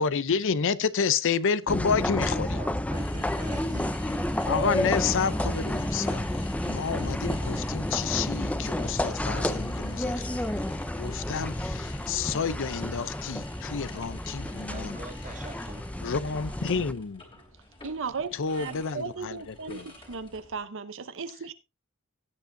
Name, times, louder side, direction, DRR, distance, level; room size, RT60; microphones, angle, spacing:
voice 1, 0.0-2.6 4.4-6.2 6.7-10.6 11.0-15.0 16.0-17.2 18.3-19.9, left 6 dB, 60° left, 0.6 m, -29 dB
sound 1, 1.7-16.9, left 1 dB, 5° left, 0.5 m, -31 dB
voice 2, 2.5-4.0 14.7-16.4, right 2 dB, 35° right, 1.9 m, -44 dB
sound 2, 2.9-20.7, left 2 dB, 25° left, 3.0 m, -47 dB
voice 3, 17.8-21.5, right 5 dB, 65° right, 0.8 m, -36 dB
17.0 x 8.3 x 2.6 m
head